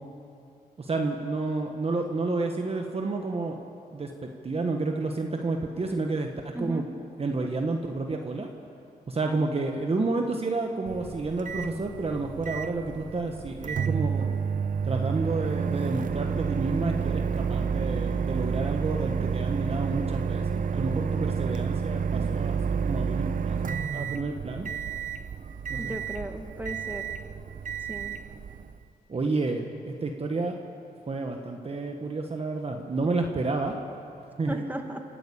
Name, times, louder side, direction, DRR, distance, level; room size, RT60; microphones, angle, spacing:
voice 1, 0.8-3.6 3.9-6.8 7.2-8.5 9.1-14.3 14.8-23.6 23.9-24.7 25.7-26.0 29.1-29.7 30.0-30.5 31.1-33.8 34.4-34.6, right 3 dB, 35° right, 3 dB, 1.4 m, -30 dB
voice 2, 6.5-6.9 25.8-27.1 27.9-28.2 34.5-35.0, right 1 dB, 10° right, 4 dB, 2.1 m, -36 dB
Microwave oven, 10.9-28.8, right 6 dB, 55° right, 0.8 m, -30 dB
26.0 x 12.0 x 8.7 m, 2.7 s
cardioid pair, 80°, 16 cm